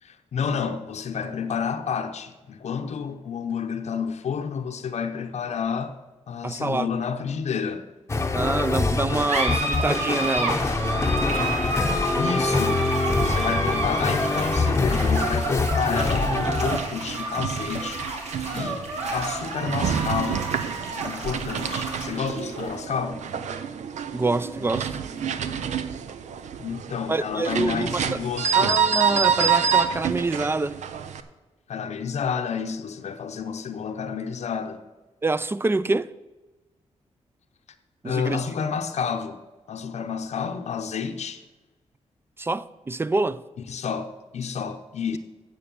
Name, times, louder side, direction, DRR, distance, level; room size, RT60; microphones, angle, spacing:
voice 1, 0.0-6.0 6.3-7.9 11.6-11.7 12.2-12.8 13.1-18.0 18.5-18.8 19.1-20.5 20.8-23.2 26.6-28.7 31.7-34.9 38.0-39.4 39.7-41.4 43.7-45.2, left 6 dB, 70° left, 0.8 m, -30 dB
voice 2, 6.4-6.9 8.3-10.7 24.1-25.0 27.1-28.2 28.5-30.8 35.2-36.1 38.0-38.4 42.4-43.4, right 3 dB, 20° right, 0.4 m, -26 dB
sound 1, 8.1-16.8, left 3 dB, 25° left, 0.8 m, -25 dB
sound 2, 8.9-25.8, right 2 dB, 70° right, 2.2 m, -31 dB
sound 3, 15.9-31.2, right 7 dB, 85° right, 0.6 m, -28 dB
9.2 x 6.7 x 6.9 m
cardioid pair, 80°, 12 cm